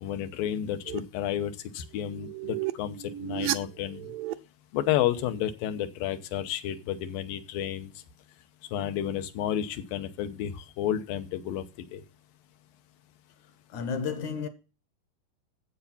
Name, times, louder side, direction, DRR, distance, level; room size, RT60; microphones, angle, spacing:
voice 1, 0.0-4.1 4.7-7.9 8.7-11.6 11.9-12.0, left 11 dB, 80° left, 2.7 m, -31 dB
sound 1, 0.9-1.0 2.0-4.3, right 13 dB, 80° right, 2.3 m, -33 dB
voice 2, 13.7-14.5, left 6 dB, 65° left, 2.3 m, -32 dB
9.6 x 8.1 x 5.7 m
omnidirectional pair, 4.0 m